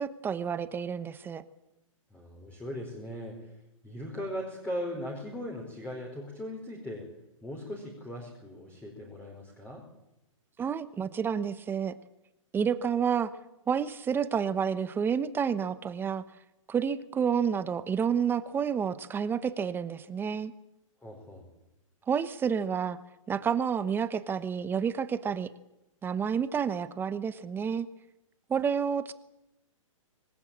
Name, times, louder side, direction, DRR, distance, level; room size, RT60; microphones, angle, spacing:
voice 1, 0.0-1.4 10.6-11.9 12.5-13.3 13.7-16.2 16.7-20.5 22.1-23.0 23.3-25.5 26.0-27.9 28.5-29.1, right 7 dB, 10° right, 13 dB, 1.1 m, -29 dB
voice 2, 2.1-3.6 3.8-7.1 7.4-9.8 21.0-21.5, equal, 10° left, 1 dB, 4.6 m, -39 dB
26.0 x 19.0 x 8.9 m, 0.90 s
hypercardioid pair, 145°, 17 cm